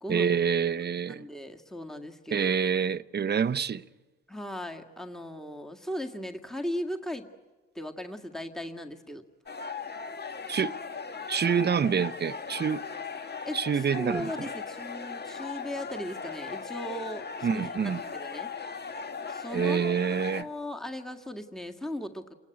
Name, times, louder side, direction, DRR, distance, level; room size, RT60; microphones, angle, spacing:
voice 1, 0.1-1.2 2.3-3.8 10.5-10.8 11.3-12.8 13.5-14.3 17.4-18.0 19.5-20.5, right 7 dB, 35° right, 0.8 m, -27 dB
voice 2, 1.1-2.5 4.3-7.3 7.8-9.2 13.5-17.7 18.1-18.5 19.3-19.9 20.4-22.3, left 1 dB, ahead, 1.9 m, -37 dB
sound 1, 9.5-20.4, left 5 dB, 35° left, 1.8 m, -38 dB
29.0 x 19.0 x 9.3 m
cardioid pair, 90°, 30 cm